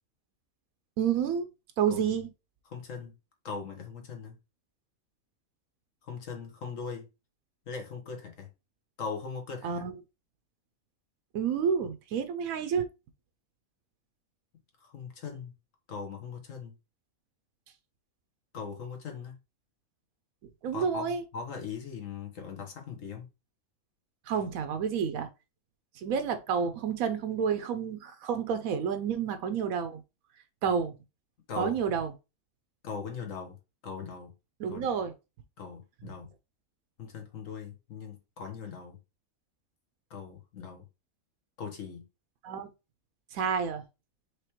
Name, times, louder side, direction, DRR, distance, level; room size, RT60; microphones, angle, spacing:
voice 1, 1.0-1.5 1.8-2.3 9.6-10.0 11.3-12.9 20.6-21.2 24.3-25.3 26.0-30.0 30.6-30.9 31.6-32.1 34.6-35.1 42.4-42.7 43.3-43.8, right 7 dB, 90° right, 1.1 m, -29 dB
voice 2, 2.7-3.1 3.4-4.4 6.0-7.1 7.7-8.5 9.0-9.8 14.8-15.5 15.9-16.7 18.5-19.3 20.7-21.0 21.3-23.3 31.5-31.8 32.8-33.6 33.8-34.3 34.7-35.0 35.6-36.3 37.0-39.0 40.1-40.8 41.6-42.0, left 5 dB, 70° left, 1.6 m, -40 dB
5.0 x 3.3 x 2.9 m
omnidirectional pair, 1.4 m